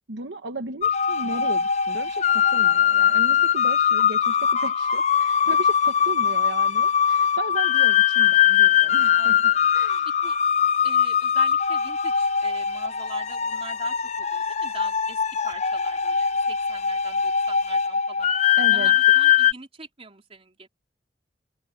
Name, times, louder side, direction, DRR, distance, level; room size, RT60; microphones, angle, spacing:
voice 1, 0.1-9.4 9.7-10.1 18.6-19.0, right 2 dB, 75° right, 1.2 m, -35 dB
sound 1, 0.8-19.5, left 8 dB, 40° left, 0.6 m, -21 dB
voice 2, 9.1-9.7 10.2-10.4 10.8-18.3 18.7-20.7, right 4 dB, 30° right, 3.6 m, -43 dB
head